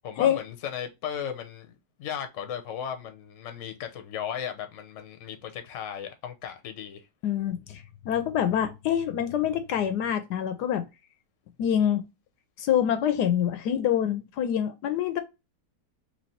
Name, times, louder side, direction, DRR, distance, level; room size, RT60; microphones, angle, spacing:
voice 1, 0.0-7.1, left 9 dB, 55° left, 0.9 m, -36 dB
voice 2, 7.2-10.8 11.6-12.0 12.6-15.2, left 9 dB, 80° left, 1.2 m, -26 dB
3.2 x 2.9 x 4.0 m
omnidirectional pair, 1.8 m